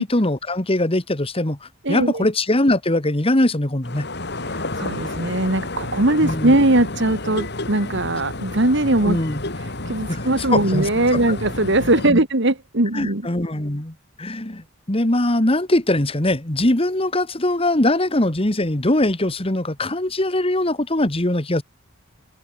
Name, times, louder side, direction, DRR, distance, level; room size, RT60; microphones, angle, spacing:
voice 1, 0.0-4.1 6.2-6.6 9.0-9.4 10.1-10.2 10.5-11.4 12.1-12.2 12.9-21.6, left 1 dB, 30° left, 1.9 m, -21 dB
voice 2, 1.8-2.3 4.4-9.2 9.6-13.3, right 1 dB, 60° right, 2.5 m, -20 dB
sound 1, 3.8-12.1, left 2 dB, 55° left, 3.8 m, -30 dB
open air
head